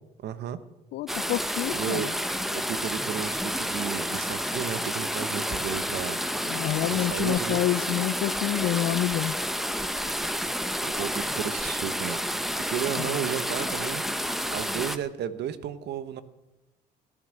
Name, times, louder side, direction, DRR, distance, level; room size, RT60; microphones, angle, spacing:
voice 1, 0.2-0.6 1.7-2.1 2.5-6.2 6.9-7.6 10.8-12.2 12.7-14.0 14.5-16.2, right 9 dB, 70° right, 1.1 m, -33 dB
voice 2, 0.9-2.1 6.5-9.3 13.0-13.1, left 14 dB, 75° left, 0.5 m, -28 dB
sound 1, 1.1-15.0, equal, ahead, 1.1 m, -30 dB
16.5 x 9.8 x 6.4 m
supercardioid pair, 65°, 18 cm